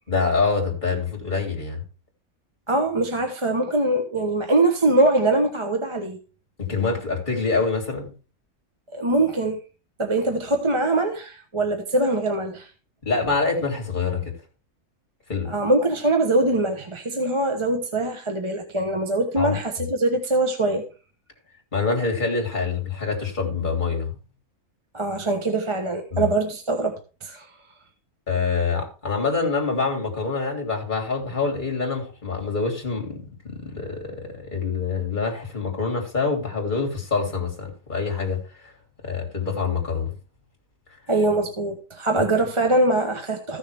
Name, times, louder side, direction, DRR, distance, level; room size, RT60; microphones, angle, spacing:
voice 1, 0.1-1.8 6.6-8.1 13.0-14.3 15.3-15.5 19.4-19.6 21.7-24.1 26.1-26.3 28.3-38.7 39.0-40.1 42.2-42.3, left 4 dB, 35° left, 3.0 m, -26 dB
voice 2, 2.7-6.2 8.9-9.6 10.0-12.7 15.5-20.8 24.9-27.5 41.1-43.6, right 2 dB, 25° right, 0.9 m, -23 dB
14.5 x 6.4 x 3.4 m
omnidirectional pair, 1.5 m